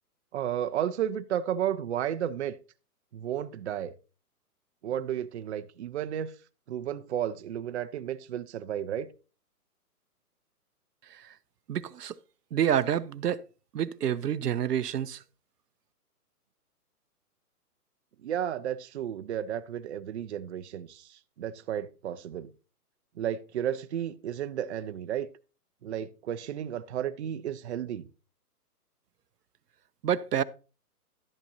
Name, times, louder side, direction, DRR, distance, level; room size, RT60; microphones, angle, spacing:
voice 1, 0.3-2.6 3.1-3.9 4.8-6.3 6.7-9.1 18.2-22.5 23.2-25.3 25.8-28.1, right 10 dB, 45° right, 0.6 m, -33 dB
voice 2, 11.7-12.1 12.5-13.4 13.7-15.2 30.0-30.4, right 9 dB, 85° right, 0.7 m, -28 dB
12.0 x 8.3 x 2.7 m
hypercardioid pair, 145°, 46 cm